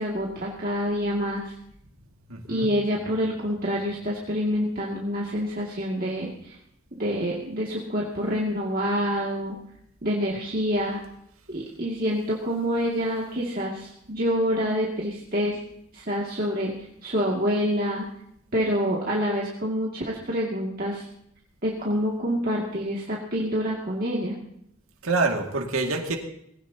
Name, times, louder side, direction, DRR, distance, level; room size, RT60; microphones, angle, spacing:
voice 1, 0.0-1.4 2.5-6.6 7.0-9.6 10.0-11.0 11.5-15.6 15.9-16.7 17.0-18.1 18.5-21.1 21.6-24.4, equal, 40° right, -4 dB, 2.3 m, -27 dB
voice 2, 2.3-2.7 25.0-26.2, right 3 dB, 85° right, 2 dB, 2.2 m, -26 dB
19.5 x 17.5 x 2.9 m, 0.74 s
head